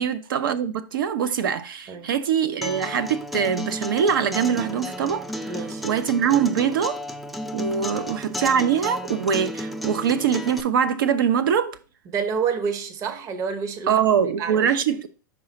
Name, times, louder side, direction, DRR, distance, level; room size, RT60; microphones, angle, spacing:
voice 1, 0.0-5.5 5.8-7.0 7.5-11.8 13.9-15.1, right 7 dB, 75° right, 0.7 m, -23 dB
Acoustic guitar, 2.6-10.6, equal, ahead, 0.3 m, -33 dB
voice 2, 5.5-5.8 7.9-8.2 12.1-14.7, right 6 dB, 30° right, 0.8 m, -29 dB
5.8 x 4.7 x 4.0 m
hypercardioid pair, 140°, 11 cm